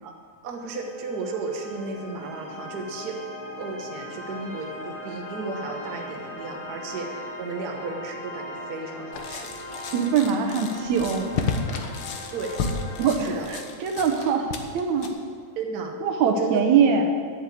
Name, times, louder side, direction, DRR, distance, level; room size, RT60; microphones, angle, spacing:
voice 1, 0.4-3.2 3.6-9.5 12.3-12.6 13.2-13.5 15.5-15.9 16.2-16.6, right 4 dB, 50° right, 1 dB, 1.2 m, -34 dB
sound 1, 0.5-13.4, left 1 dB, 35° left, 1.8 m, -39 dB
sound 2, 9.1-15.1, left 5 dB, 65° left, 1.4 m, -32 dB
voice 2, 9.9-11.3 13.0-15.1 16.0-17.0, right 6 dB, 70° right, 4 dB, 2.1 m, -23 dB
10.5 x 7.9 x 8.5 m, 2.3 s
omnidirectional pair, 3.5 m